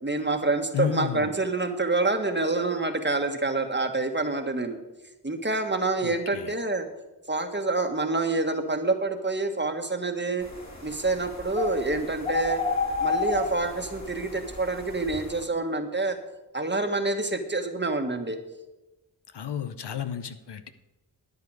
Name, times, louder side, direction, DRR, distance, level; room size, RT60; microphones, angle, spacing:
voice 1, 0.0-4.8 5.2-6.8 7.3-10.4 10.8-12.6 13.0-16.2 16.5-18.4, right 3 dB, 25° right, 5 dB, 1.5 m, -27 dB
voice 2, 0.7-1.3 6.0-6.5 19.3-20.7, left 9 dB, 70° left, 10 dB, 0.8 m, -32 dB
sound 1, 10.4-15.4, left 3 dB, 40° left, 2.9 m, -31 dB
13.0 x 9.6 x 4.8 m, 1.0 s
cardioid pair, 50°, 42 cm